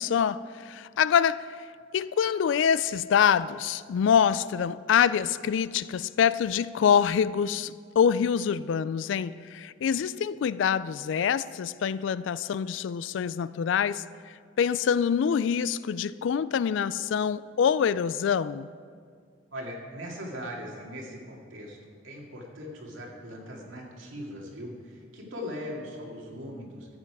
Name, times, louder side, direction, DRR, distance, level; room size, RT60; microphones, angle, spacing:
voice 1, 0.0-1.7 1.9-18.7, left 7 dB, 65° left, 0.3 m, -25 dB
voice 2, 19.5-26.9, equal, 80° right, 2.2 m, -40 dB
13.5 x 8.0 x 4.8 m
head